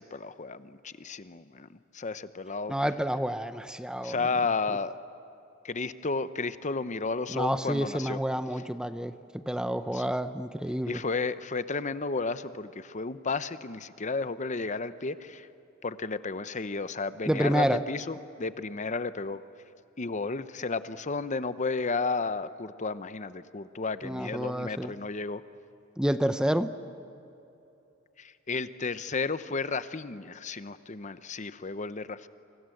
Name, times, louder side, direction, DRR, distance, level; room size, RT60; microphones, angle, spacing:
voice 1, 0.0-2.7 4.0-4.9 5.6-8.2 9.9-10.0 10.9-15.5 15.8-19.4 20.0-25.4 28.2-32.3, left 4 dB, 35° left, 13 dB, 0.8 m, -33 dB
voice 2, 2.7-4.2 7.3-11.0 17.3-17.8 24.0-24.9 26.0-26.7, equal, 5° right, 11 dB, 0.7 m, -29 dB
30.0 x 25.0 x 7.8 m, 2.9 s
head